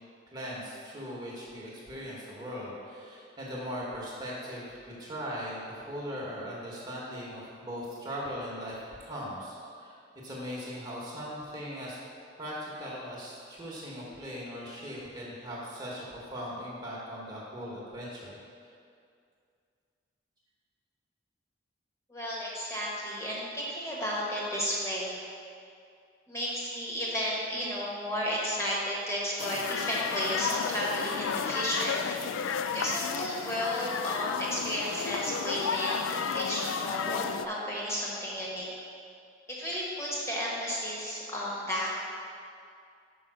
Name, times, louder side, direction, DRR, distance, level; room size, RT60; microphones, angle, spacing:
voice 1, 0.3-9.9 10.2-12.0 12.4-18.3, equal, 20° right, -6 dB, 1.2 m, -39 dB
voice 2, 22.1-25.2 26.3-32.0 32.7-38.7 39.5-42.0, equal, 15° left, -5 dB, 1.2 m, -33 dB
sound 1, 29.4-37.5, left 6 dB, 85° left, 0.3 m, -32 dB
5.4 x 5.4 x 6.1 m, 2.4 s
head